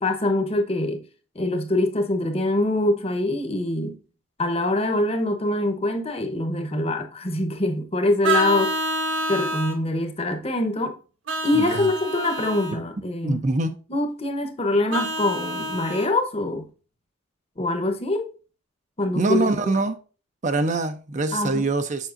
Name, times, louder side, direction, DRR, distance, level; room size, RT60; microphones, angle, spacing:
voice 1, 0.0-1.0 1.3-4.0 4.4-8.8 9.3-11.0 11.4-13.5 13.9-16.7 17.6-18.3 19.0-19.4 21.3-21.7, left 2 dB, 30° left, 1.0 m, -24 dB
Vehicle horn car horn honking, 8.2-9.8 11.3-12.8 14.9-16.1, right 2 dB, 70° right, 1.3 m, -27 dB
voice 2, 11.5-11.9 13.2-13.8 19.1-20.0 20.4-22.1, right 2 dB, 40° right, 0.5 m, -24 dB
7.3 x 5.9 x 2.5 m
head